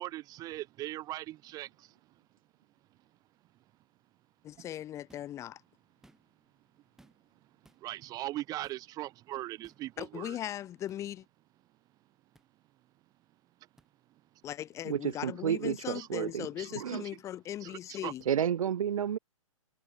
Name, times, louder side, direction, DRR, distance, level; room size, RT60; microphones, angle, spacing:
voice 1, 0.0-1.9 4.6-4.7 7.7-10.4 15.9-16.1 16.6-16.8 17.6-18.1, right 16 dB, 20° right, 0.8 m, -40 dB
voice 2, 4.4-5.6 10.0-11.2 14.4-18.2, left 12 dB, 15° left, 0.7 m, -39 dB
sound 1, 5.1-5.4 5.9-6.5 7.0-7.3 7.6-7.8 8.6-8.9 9.6-9.9 10.9-11.0 12.3-12.5 13.8-13.9 15.1-15.2 16.6-16.7 18.2-18.3, right 1 dB, 5° right, 1.8 m, -63 dB
voice 3, 14.8-17.0 18.3-19.2, right 9 dB, 75° right, 0.5 m, -31 dB
hypercardioid pair, 135°, 18 cm